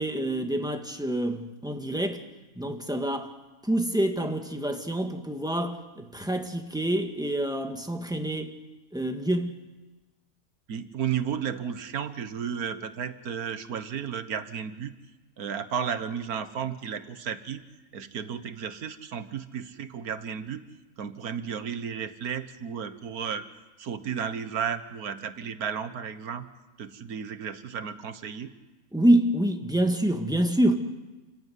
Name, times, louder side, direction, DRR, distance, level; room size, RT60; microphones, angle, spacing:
voice 1, 0.0-2.2 2.6-3.3 3.6-8.5 8.9-9.6 28.9-30.8, right 1 dB, 5° right, 1.7 m, -26 dB
voice 2, 10.7-14.9 15.4-17.6 17.9-20.6 21.0-23.5 23.8-26.5 26.8-28.5, right 7 dB, 90° right, 1.7 m, -33 dB
29.0 x 15.0 x 9.4 m
omnidirectional pair, 1.5 m